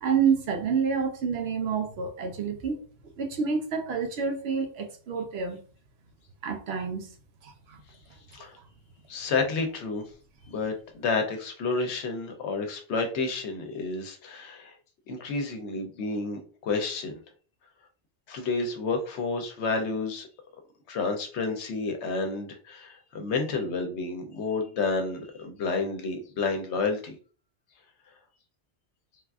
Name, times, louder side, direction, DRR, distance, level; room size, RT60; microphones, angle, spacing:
voice 1, 0.0-2.8 3.2-5.6 6.4-7.1 7.4-7.8, right 6 dB, 65° right, 5 dB, 0.8 m, -28 dB
voice 2, 9.1-10.0 10.5-14.8 15.1-17.2 18.3-20.3 20.9-27.2, left 4 dB, 75° left, 5 dB, 0.9 m, -30 dB
3.3 x 2.4 x 2.3 m, 0.39 s
omnidirectional pair, 1.2 m